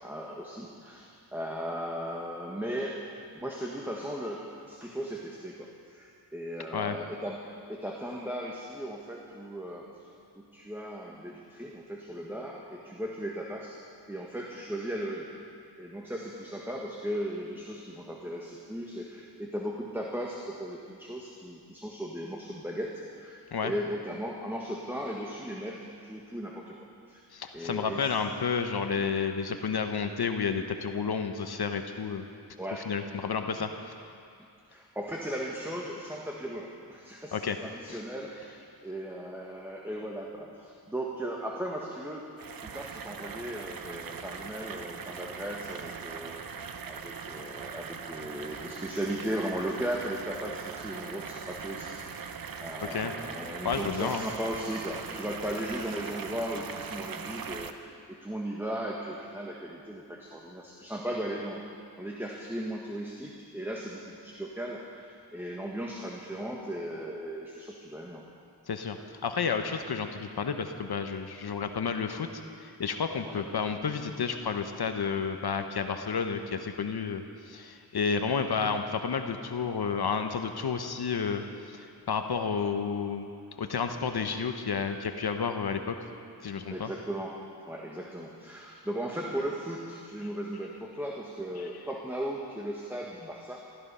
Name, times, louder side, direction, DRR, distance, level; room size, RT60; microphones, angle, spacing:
voice 1, 0.0-13.8 14.1-15.3 15.8-26.8 27.1-27.2 27.5-28.1 32.6-33.1 34.7-42.3 42.6-61.7 62.0-68.2 73.2-73.4 86.7-93.6, equal, 5° right, -2 dB, 1.6 m, -37 dB
voice 2, 27.3-32.2 32.7-33.7 37.3-37.6 37.9-38.0 52.8-53.1 53.6-54.2 68.7-83.3 83.6-86.0 86.4-86.9 91.6-91.7, left 6 dB, 65° left, 6 dB, 1.0 m, -31 dB
sound 1, 42.4-57.7, right 6 dB, 55° right, 0.9 m, -40 dB
15.0 x 13.5 x 5.5 m, 2.5 s
cardioid pair, 60°, 41 cm